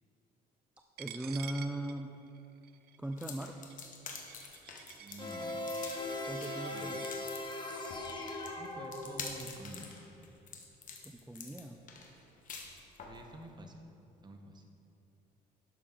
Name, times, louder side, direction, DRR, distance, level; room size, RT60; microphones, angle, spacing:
voice 1, 1.0-2.2 3.0-3.6 6.3-7.1 11.0-11.8, right 1 dB, 5° right, 3 dB, 0.4 m, -39 dB
Coin (dropping), 1.0-7.1, right 11 dB, 70° right, 0.5 m, -51 dB
sound 1, 3.2-13.2, left 5 dB, 50° left, 1.2 m, -47 dB
voice 2, 5.0-5.6 6.7-7.0 8.6-10.0 13.1-13.8 14.2-14.6, right 2 dB, 25° right, 4 dB, 1.0 m, -49 dB
sound 2, 5.2-9.5, left 2 dB, 25° left, 1.1 m, -39 dB
11.5 x 6.5 x 3.8 m, 2.9 s
cardioid pair, 110°, 17 cm